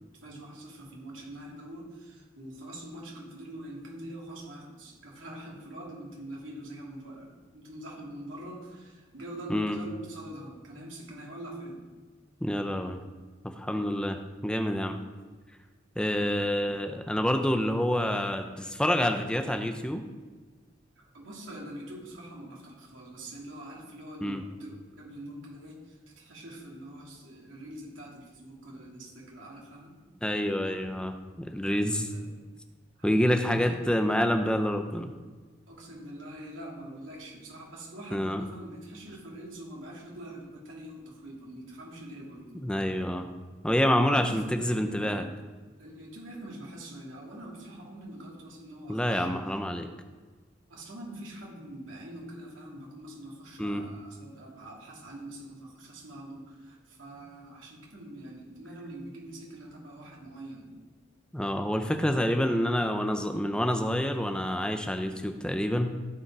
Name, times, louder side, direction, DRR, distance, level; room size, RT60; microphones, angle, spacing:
voice 1, 0.1-11.8 16.0-16.7 21.0-30.0 31.8-32.3 33.4-33.8 35.7-42.7 44.0-45.3 45.8-49.3 50.7-60.7, right 1 dB, 85° right, -3 dB, 3.1 m, -44 dB
voice 2, 12.4-13.0 13.6-15.0 16.0-20.0 24.2-24.4 30.2-32.1 33.0-35.1 38.1-38.4 42.5-43.3 43.6-45.3 48.9-49.9 53.6-53.8 61.3-66.0, equal, 5° left, 5 dB, 0.7 m, -27 dB
15.0 x 5.3 x 4.8 m, 1.4 s
head